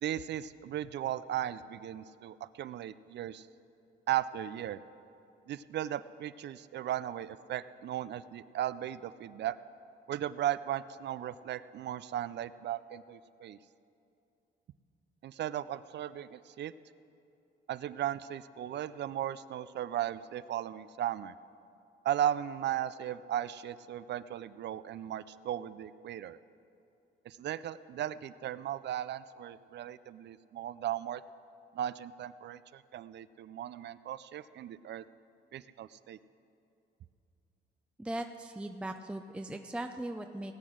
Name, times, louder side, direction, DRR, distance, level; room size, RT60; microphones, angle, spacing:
voice 1, 0.0-3.5 4.1-4.8 5.5-9.6 10.1-13.6 15.2-16.7 17.7-21.3 22.0-26.4 27.3-31.2 31.7-35.0 35.5-36.2, right 11 dB, 60° right, 16 dB, 0.5 m, -36 dB
voice 2, 38.0-40.5, right 1 dB, 5° right, 6 dB, 0.5 m, -39 dB
19.0 x 7.9 x 6.3 m, 2.7 s
cardioid pair, 90°, 20 cm